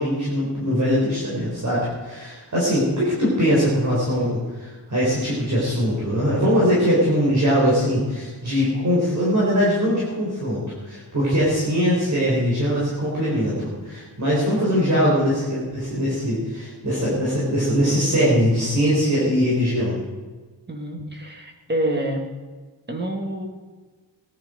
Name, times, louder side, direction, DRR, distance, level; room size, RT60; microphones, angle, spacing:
voice 1, 0.0-19.9, equal, 40° right, -7 dB, 4.4 m, -21 dB
voice 2, 20.7-22.3 22.9-23.5, right 1 dB, 25° right, 2 dB, 2.0 m, -27 dB
19.0 x 10.5 x 5.1 m, 1.3 s
wide cardioid pair, 180°, 45 cm